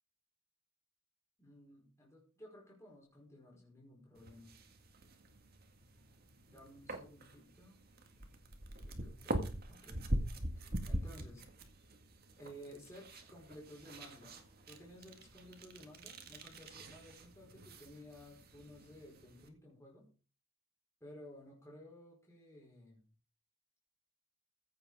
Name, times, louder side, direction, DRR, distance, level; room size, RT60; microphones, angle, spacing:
voice 1, 1.4-4.5 6.5-7.8 8.8-9.4 9.7-10.0 10.8-11.4 12.4-20.1 21.0-23.0, equal, 15° left, -3 dB, 4.9 m, -55 dB
sound 1, 4.2-19.5, right 1 dB, 45° right, 1.9 m, -44 dB
15.5 x 7.8 x 4.9 m, 0.36 s
head